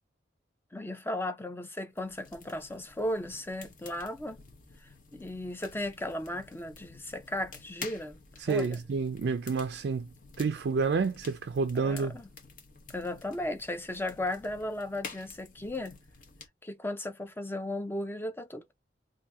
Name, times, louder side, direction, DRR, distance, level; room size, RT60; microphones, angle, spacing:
voice 1, 0.7-4.4 5.1-8.2 8.5-8.8 11.8-12.3 12.9-16.0 16.6-18.7, left 1 dB, 15° left, 0.5 m, -35 dB
sound 1, 1.9-16.5, left 4 dB, 50° left, 1.0 m, -50 dB
voice 2, 8.4-10.1 10.4-12.2, right 4 dB, 65° right, 0.4 m, -29 dB
2.8 x 2.7 x 3.3 m
head